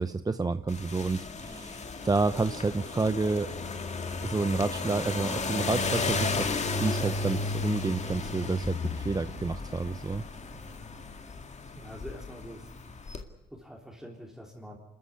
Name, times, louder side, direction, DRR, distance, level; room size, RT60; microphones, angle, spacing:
voice 1, 0.0-3.5 4.2-6.5 6.8-10.3, right 3 dB, 20° right, 11 dB, 0.7 m, -29 dB
sound 1, 0.7-13.2, left 3 dB, 35° left, 2.1 m, -34 dB
voice 2, 10.5-10.9 11.4-12.7 13.5-14.8, equal, ahead, -3 dB, 3.8 m, -46 dB
26.0 x 14.5 x 9.6 m, 1.2 s
cardioid pair, 90°, 20 cm